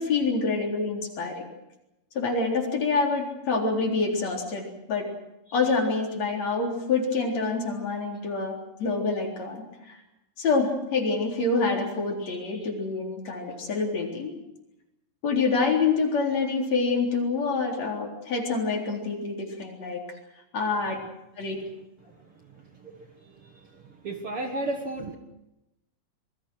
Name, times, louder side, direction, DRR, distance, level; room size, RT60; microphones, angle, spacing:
voice 1, 0.0-1.5 2.1-5.1 5.5-10.0 10.4-14.4 15.2-20.0 20.5-21.0 21.4-21.6, left 4 dB, 50° left, 2 dB, 5.0 m, -27 dB
voice 2, 24.0-25.1, right 2 dB, 45° right, 5 dB, 2.2 m, -31 dB
27.0 x 22.0 x 6.4 m, 0.91 s
omnidirectional pair, 3.9 m